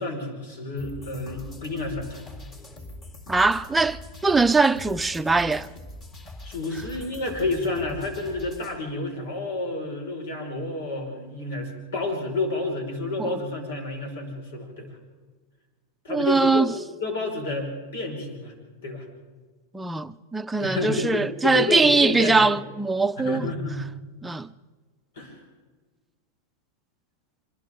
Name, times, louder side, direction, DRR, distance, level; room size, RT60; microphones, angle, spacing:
voice 1, 0.0-2.3 6.4-14.9 16.0-16.7 17.0-18.5 18.8-19.1 20.6-22.5 23.2-23.8 25.2-25.4, left 2 dB, 85° left, 5.6 m, -30 dB
sound 1, 0.8-8.8, left 2 dB, 30° left, 4.1 m, -43 dB
voice 2, 3.3-5.7 13.2-13.3 16.1-16.7 19.7-23.5 24.2-24.5, right 3 dB, 10° right, 0.6 m, -22 dB
27.5 x 24.0 x 3.9 m
supercardioid pair, 130°, 0 cm